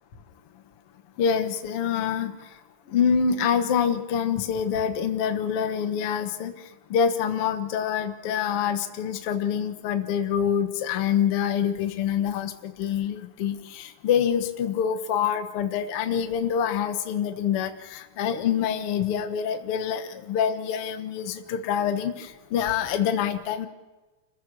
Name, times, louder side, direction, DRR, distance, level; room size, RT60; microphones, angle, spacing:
voice 1, 1.2-2.3 2.9-6.5 6.9-23.7, left 8 dB, 65° left, 7 dB, 1.4 m, -26 dB
28.0 x 15.5 x 6.2 m, 1.2 s
omnidirectional pair, 4.7 m